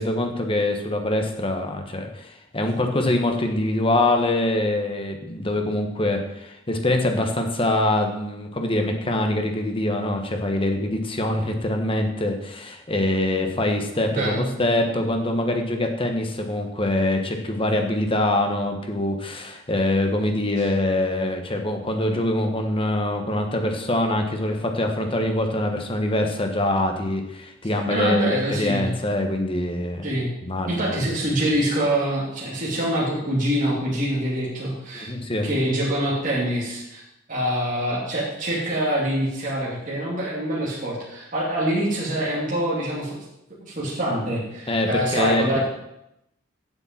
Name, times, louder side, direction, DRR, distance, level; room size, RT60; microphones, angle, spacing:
voice 1, 0.0-30.0 30.5-31.0 34.9-35.5 44.7-45.4, left 1 dB, 25° left, 4 dB, 1.3 m, -24 dB
voice 2, 14.1-14.5 27.9-28.9 30.0-30.3 30.7-35.1 35.4-37.0 37.3-43.2 43.6-45.7, right 1 dB, 40° right, -6 dB, 2.7 m, -25 dB
8.2 x 7.0 x 7.3 m, 0.85 s
head